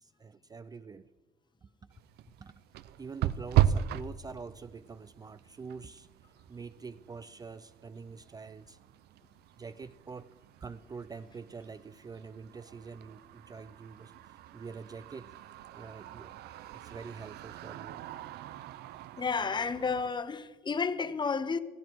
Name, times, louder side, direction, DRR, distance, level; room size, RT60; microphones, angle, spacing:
voice 1, 0.0-1.1 1.6-1.7 2.4-2.5 3.0-6.1 6.5-8.8 9.6-10.3 10.6-15.3 15.7-18.0 20.2-20.3, right 5 dB, 20° right, 0.4 m, -46 dB
sound 1, 1.9-20.1, right 11 dB, 75° right, 0.6 m, -37 dB
voice 2, 19.2-21.6, left 5 dB, 25° left, 0.8 m, -31 dB
16.0 x 14.0 x 4.6 m
cardioid pair, 110°, 17 cm